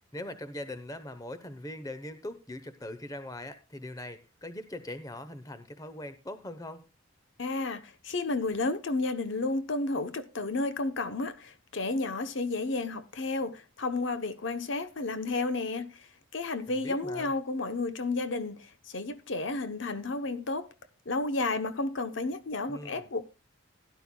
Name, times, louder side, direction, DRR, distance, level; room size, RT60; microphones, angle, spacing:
voice 1, 0.1-6.8 16.7-17.3 22.7-23.1, left 1 dB, 15° left, 0.8 m, -41 dB
voice 2, 7.4-20.7 21.1-23.2, left 3 dB, 60° left, 0.8 m, -32 dB
16.5 x 11.0 x 2.3 m
head